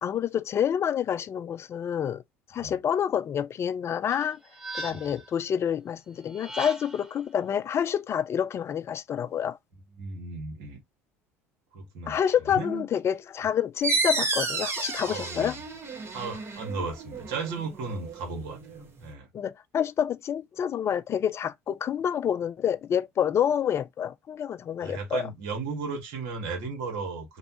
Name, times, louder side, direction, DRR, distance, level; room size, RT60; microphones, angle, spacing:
voice 1, 0.0-2.2 2.5-4.4 4.7-9.6 12.1-15.6 19.3-25.3, left 8 dB, 35° left, 0.4 m, -28 dB
sound 1, 4.1-5.3 6.3-7.1, right 1 dB, 10° right, 0.8 m, -39 dB
voice 2, 4.8-5.2 10.0-10.8 11.7-12.2 12.5-12.8 15.1-15.5 16.1-19.3 24.8-27.4, right 4 dB, 65° right, 1.6 m, -35 dB
sound 2, 13.8-19.1, right 3 dB, 35° right, 1.3 m, -32 dB
3.1 x 2.4 x 2.9 m
hypercardioid pair, 70°, 7 cm